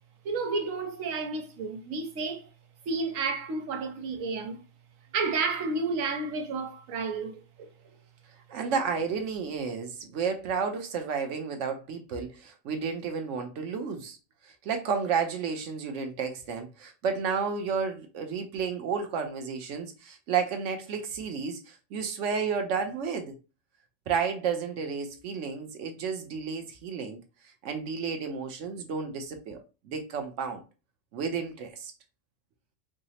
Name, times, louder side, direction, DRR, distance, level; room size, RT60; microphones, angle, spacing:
voice 1, 0.2-2.5 2.9-4.6 5.1-7.7, right 4 dB, 90° right, 1.1 m, -31 dB
voice 2, 8.5-14.2 14.6-23.3 24.1-27.2 27.6-30.6 31.1-31.9, right 6 dB, 70° right, 1.0 m, -32 dB
4.9 x 2.0 x 2.7 m
omnidirectional pair, 1.3 m